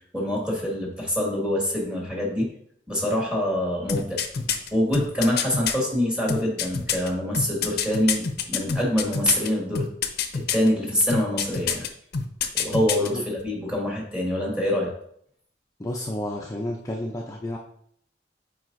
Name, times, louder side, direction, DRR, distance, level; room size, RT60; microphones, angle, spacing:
voice 1, 0.1-2.5 2.9-4.2 4.7-9.9 10.3-11.9 12.5-14.9, left 1 dB, 5° right, -3 dB, 1.9 m, -25 dB
sound 1, 3.9-5.7 6.3-9.5 9.7-10.7 11.1-11.9 12.1-13.1 13.4-13.5, left 6 dB, 60° left, 0.6 m, -26 dB
voice 2, 15.8-17.6, left 1 dB, 20° left, -1 dB, 0.5 m, -31 dB
7.6 x 4.7 x 2.6 m, 0.66 s
head